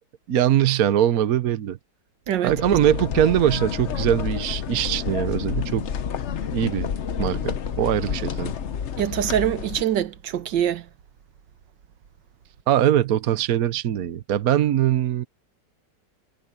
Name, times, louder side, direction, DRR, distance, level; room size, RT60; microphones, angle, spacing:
voice 1, 0.3-1.8 2.4-5.9 6.5-6.9 7.2-8.5 12.7-15.2, right 11 dB, 60° right, 1.3 m, -22 dB
sound 1, 2.5-9.8, left 7 dB, 50° left, 0.9 m, -29 dB
voice 2, 9.0-10.9, right 10 dB, 90° right, 1.7 m, -24 dB
omnidirectional pair, 1.9 m